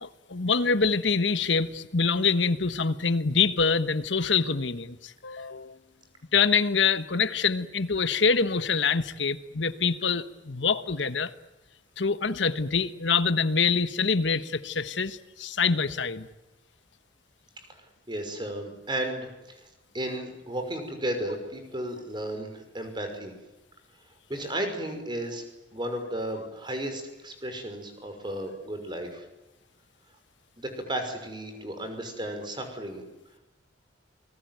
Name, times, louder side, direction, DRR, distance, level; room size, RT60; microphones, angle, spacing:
voice 1, 0.0-5.8 6.3-11.3 12.0-16.3, left 5 dB, 80° left, 12 dB, 1.3 m, -25 dB
voice 2, 18.1-19.6 19.9-23.3 24.3-25.4 25.7-29.2 30.6-33.0, right 1 dB, 25° right, 6 dB, 5.8 m, -34 dB
29.0 x 21.0 x 9.4 m, 1.0 s
head